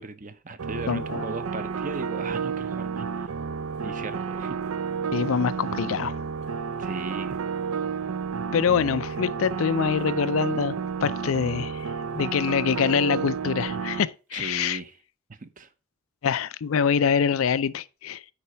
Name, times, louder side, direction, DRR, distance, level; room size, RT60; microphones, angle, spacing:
voice 1, 0.0-3.3 3.8-4.8 6.8-7.4 14.3-14.9 15.3-15.7, right 3 dB, 35° right, 0.8 m, -37 dB
sound 1, 0.6-14.0, right 6 dB, 80° right, 0.5 m, -31 dB
voice 2, 0.9-1.2 5.1-6.2 8.5-11.9 12.1-14.8 16.2-18.2, left 6 dB, 70° left, 0.4 m, -25 dB
10.0 x 4.2 x 5.5 m
head